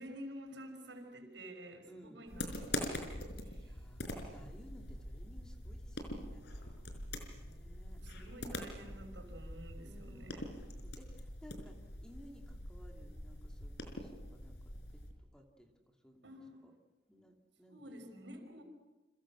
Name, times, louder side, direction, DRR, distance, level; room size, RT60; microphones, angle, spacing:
voice 1, 0.0-3.7 8.0-10.5 16.2-16.6 17.7-18.6, equal, 85° right, 5 dB, 5.7 m, -50 dB
voice 2, 1.8-2.2 3.6-6.5 7.3-8.0 9.8-10.5 10.8-15.0 15.3-16.8 17.1-18.0, equal, 5° left, 2 dB, 2.9 m, -58 dB
sound 1, 2.3-15.1, left 1 dB, 65° left, 5.0 m, -44 dB
29.5 x 26.5 x 6.5 m, 1.1 s
head